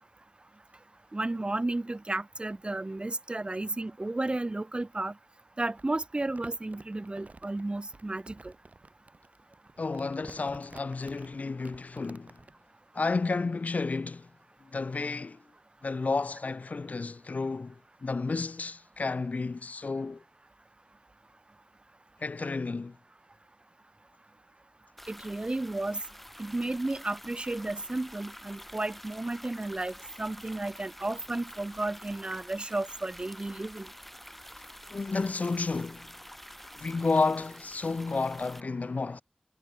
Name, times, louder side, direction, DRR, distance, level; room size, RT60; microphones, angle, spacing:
voice 1, 1.1-5.1 5.6-8.5 25.1-26.0 26.4-33.9, right 2 dB, 45° right, 0.7 m, -33 dB
Crumpling crinkling, 5.7-12.5, right 3 dB, 75° right, 2.3 m, -51 dB
voice 2, 9.8-12.4 12.9-14.3 14.6-15.4 15.8-20.2 22.2-23.0 34.9-36.1 36.8-39.2, left 3 dB, 90° left, 0.5 m, -31 dB
sound 1, 25.0-38.6, equal, 5° left, 0.5 m, -48 dB
wide cardioid pair, 50°, 3 cm